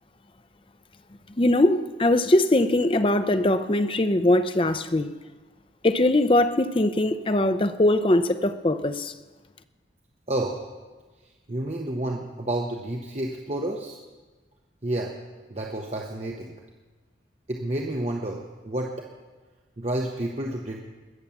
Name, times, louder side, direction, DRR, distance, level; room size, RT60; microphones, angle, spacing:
voice 1, 1.4-5.1 5.8-9.1, left 1 dB, 30° left, 0.6 m, -21 dB
voice 2, 10.3-10.7 11.5-14.0 14.8-15.1 15.5-16.5 17.5-19.1 19.8-20.8, right 1 dB, 35° right, 1.0 m, -30 dB
21.0 x 7.3 x 7.2 m
head